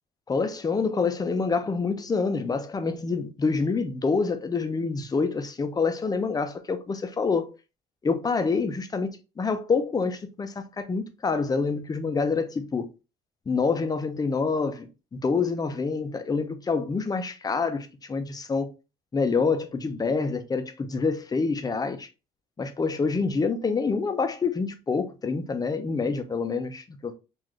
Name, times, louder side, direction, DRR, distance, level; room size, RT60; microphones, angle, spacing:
voice 1, 0.3-7.5 8.0-9.1 9.4-12.9 13.5-18.7 19.1-22.1 22.6-27.1, left 4 dB, 20° left, 0.6 m, -27 dB
3.9 x 2.5 x 3.1 m
cardioid pair, 110°, 17 cm